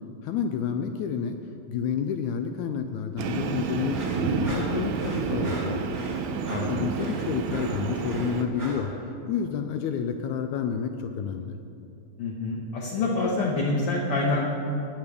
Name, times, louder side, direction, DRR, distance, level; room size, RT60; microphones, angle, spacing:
voice 1, 0.2-1.4 1.7-5.9 6.7-8.9 9.3-11.6, left 7 dB, 80° left, 6 dB, 1.7 m, -29 dB
Train, 3.2-8.4, right 5 dB, 80° right, 1.9 m, -29 dB
sound 1, 3.9-8.9, equal, 15° right, 0.7 m, -40 dB
voice 2, 12.2-14.5, left 2 dB, 60° left, -4 dB, 1.6 m, -26 dB
16.5 x 9.8 x 3.5 m, 2.6 s
omnidirectional pair, 3.8 m